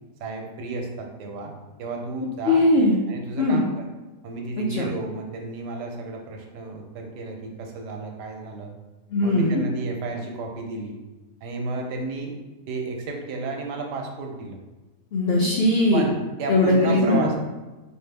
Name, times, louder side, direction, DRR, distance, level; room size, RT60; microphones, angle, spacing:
voice 1, 0.2-1.5 1.8-2.6 3.1-3.9 4.2-8.7 9.2-11.0 11.4-12.4 12.7-14.6 15.9-17.4, right 3 dB, 85° right, 2 dB, 1.3 m, -32 dB
voice 2, 2.4-3.0 3.4-3.6 4.8-4.9 9.1-9.6 15.1-16.0 16.5-17.3, left 2 dB, 80° left, -2 dB, 0.5 m, -19 dB
4.7 x 2.6 x 3.3 m, 1.1 s
omnidirectional pair, 1.8 m